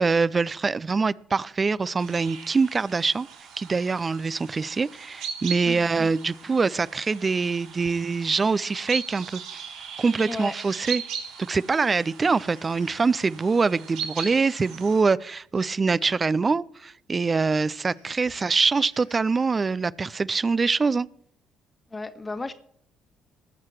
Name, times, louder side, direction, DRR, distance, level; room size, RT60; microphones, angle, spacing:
voice 1, 0.0-3.3 3.6-9.6 10.0-11.0 11.4-21.1, right 4 dB, 30° right, 0.4 m, -24 dB
sound 1, 2.0-15.0, right 7 dB, 65° right, 3.5 m, -39 dB
voice 2, 5.7-6.1 10.3-10.6 21.9-22.5, left 3 dB, 25° left, 1.4 m, -34 dB
sound 2, 10.6-11.0 12.3-12.9 14.6-14.9 15.5-15.7 16.0-16.1 17.8-19.7, left 3 dB, 85° left, 6.8 m, -57 dB
20.0 x 7.4 x 4.5 m
figure-of-eight pair, 45°, 0 cm